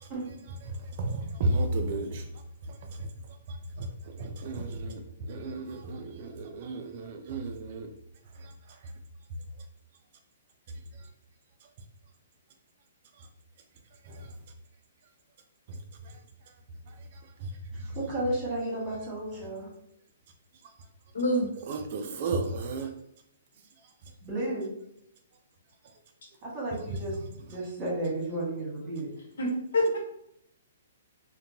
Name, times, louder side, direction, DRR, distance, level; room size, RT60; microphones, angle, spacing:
voice 1, 1.0-2.1 4.2-5.0 5.3-6.3 6.7-7.9 21.7-22.9, right 2 dB, 45° right, 0.3 m, -32 dB
voice 2, 17.8-19.7 24.2-24.7 26.4-29.1, right 1 dB, 25° right, 1.4 m, -33 dB
voice 3, 21.1-21.5 29.4-30.0, equal, 80° left, 0.9 m, -26 dB
2.8 x 2.2 x 2.6 m
hypercardioid pair, 155°, 0 cm